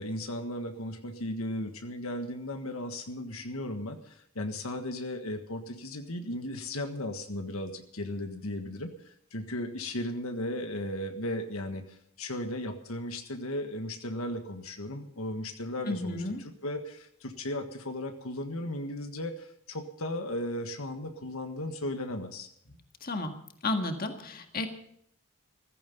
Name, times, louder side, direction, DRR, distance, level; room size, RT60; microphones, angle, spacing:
voice 1, 0.0-22.5, left 1 dB, 80° left, 6 dB, 1.6 m, -36 dB
voice 2, 15.9-16.4 23.0-23.3 23.6-24.7, left 2 dB, 45° left, 5 dB, 1.8 m, -32 dB
15.0 x 15.0 x 5.4 m, 0.68 s
head